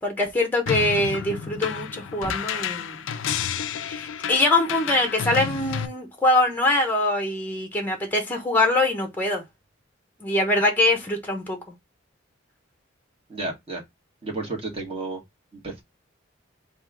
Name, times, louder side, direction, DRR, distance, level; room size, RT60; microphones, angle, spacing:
voice 1, 0.0-3.0 3.9-9.4 10.2-11.6, left 2 dB, 10° left, 0.8 m, -23 dB
sound 1, 0.7-5.9, left 7 dB, 75° left, 0.5 m, -30 dB
voice 2, 13.3-13.8 14.2-15.2 15.6-15.8, right 2 dB, 30° right, 1.6 m, -32 dB
3.5 x 2.5 x 4.5 m
head